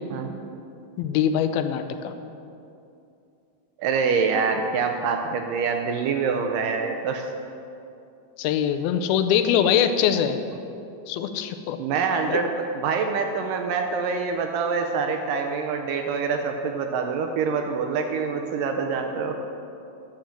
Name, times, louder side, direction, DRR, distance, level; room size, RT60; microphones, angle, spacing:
voice 1, 1.0-2.1 8.4-10.4 11.1-11.8 12.3-12.4, left 9 dB, 90° left, 9 dB, 2.5 m, -23 dB
voice 2, 3.8-7.3 11.8-19.3, right 5 dB, 80° right, 4 dB, 2.1 m, -25 dB
10.5 x 7.3 x 7.4 m, 2.7 s
omnidirectional pair, 4.3 m